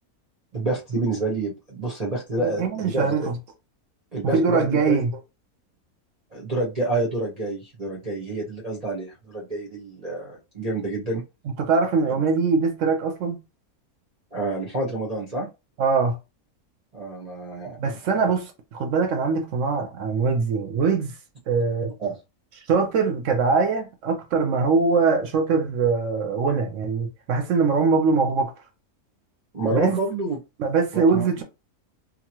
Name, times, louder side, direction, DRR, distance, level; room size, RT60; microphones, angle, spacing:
voice 1, 0.5-3.1 4.1-5.0 6.3-11.2 14.3-15.5 16.9-18.0 22.0-22.1 29.5-30.4 30.9-31.3, right 2 dB, 35° right, 0.6 m, -28 dB
voice 2, 2.4-3.3 4.3-5.1 11.6-13.4 15.8-16.2 17.8-21.2 21.5-21.9 22.7-28.5 29.7-30.0 30.6-31.4, right 4 dB, 65° right, 0.8 m, -22 dB
2.9 x 2.3 x 2.9 m
omnidirectional pair, 1.6 m